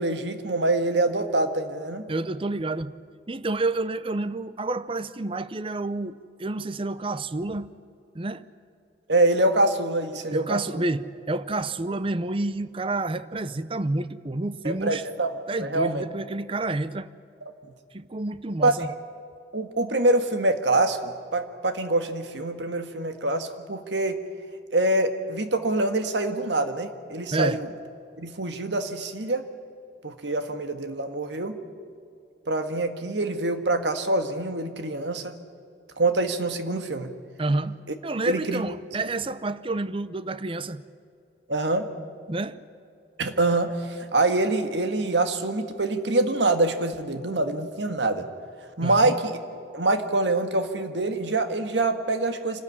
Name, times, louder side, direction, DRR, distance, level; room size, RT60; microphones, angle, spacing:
voice 1, 0.0-2.0 9.1-10.8 14.6-16.0 18.6-18.7 19.5-24.2 24.7-27.7 28.2-29.4 30.0-31.6 32.5-35.4 36.0-37.1 38.2-38.6 41.5-41.9 43.2-48.3 48.8-49.4 49.7-52.6, right 2 dB, 80° right, 1.6 m, -25 dB
voice 2, 2.1-2.9 3.3-7.7 8.1-8.5 10.3-15.0 15.5-17.1 17.9-18.9 27.3-27.6 37.4-37.8 38.0-40.8 42.3-42.6 48.8-49.1, right 2 dB, 30° right, 0.6 m, -29 dB
26.0 x 13.0 x 9.7 m
head